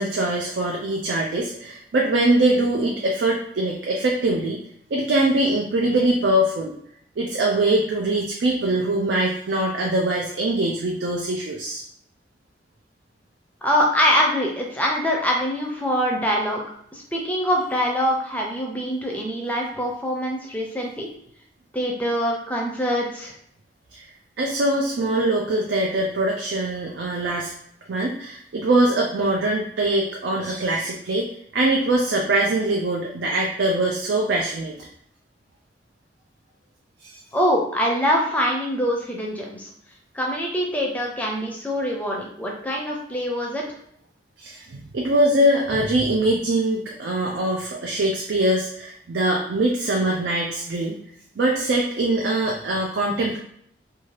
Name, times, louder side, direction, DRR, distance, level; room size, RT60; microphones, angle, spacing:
voice 1, 0.0-4.6 4.9-6.7 7.2-11.8 23.9-24.1 24.4-27.5 27.9-31.3 31.5-34.7 37.0-37.2 44.4-51.0 51.4-53.4, right 1 dB, 70° right, -1 dB, 0.4 m, -22 dB
voice 2, 13.6-16.6 16.9-21.1 21.7-23.3 37.3-39.7 40.1-43.6, equal, 10° left, -1 dB, 0.5 m, -24 dB
2.7 x 2.3 x 3.1 m, 0.69 s
head